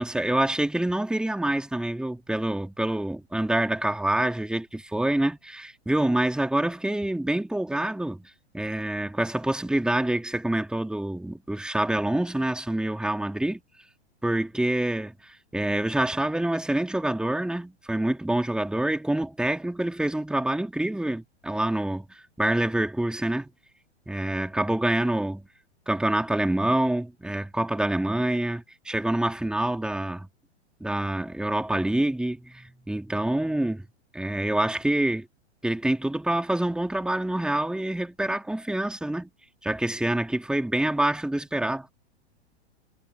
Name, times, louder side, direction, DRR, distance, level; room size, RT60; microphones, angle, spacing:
voice 1, 0.0-13.6 14.2-23.5 24.1-25.4 25.9-30.3 30.8-33.9 34.1-35.3 35.6-39.3 39.6-41.9, right 1 dB, ahead, 3.1 m, -26 dB
figure-of-eight pair, 105°, 34 cm